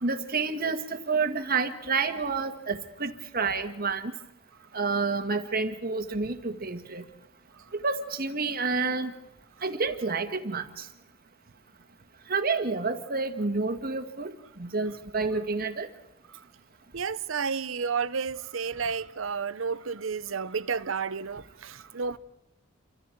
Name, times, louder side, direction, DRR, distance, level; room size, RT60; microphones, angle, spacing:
voice 1, 0.0-4.1 4.7-7.0 7.7-9.1 9.6-10.9 12.3-15.9, right 4 dB, 50° right, 1.8 m, -29 dB
voice 2, 16.9-22.2, right 5 dB, 75° right, 0.7 m, -31 dB
28.0 x 25.0 x 4.6 m
head